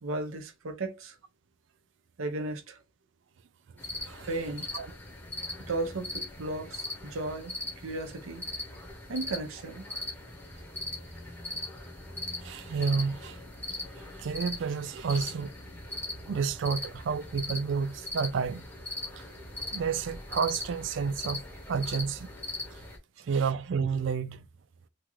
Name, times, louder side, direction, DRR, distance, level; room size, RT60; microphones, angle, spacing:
voice 1, 0.0-1.2 2.2-2.8 4.3-4.7 5.6-7.5 7.8-8.4 9.1-9.9, right 2 dB, 80° right, 0.7 m, -35 dB
sound 1, 3.8-23.0, left 2 dB, 10° left, 0.7 m, -40 dB
voice 2, 12.4-13.4 14.0-15.5 16.3-18.7 19.5-21.4 21.7-22.3 23.2-24.5, right 5 dB, 60° right, 0.3 m, -30 dB
2.9 x 2.4 x 3.0 m
head